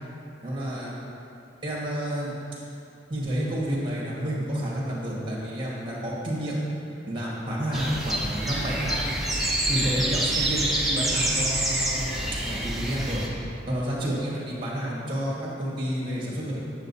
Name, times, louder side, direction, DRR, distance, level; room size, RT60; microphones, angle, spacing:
voice 1, 0.4-0.9 1.6-2.3 3.1-6.6 7.1-9.0 9.7-12.2 12.4-13.2 13.7-16.6, equal, 25° right, -5 dB, 1.5 m, -30 dB
sound 1, 7.7-13.3, right 1 dB, ahead, 0.7 m, -27 dB
8.9 x 7.1 x 2.7 m, 2.7 s
head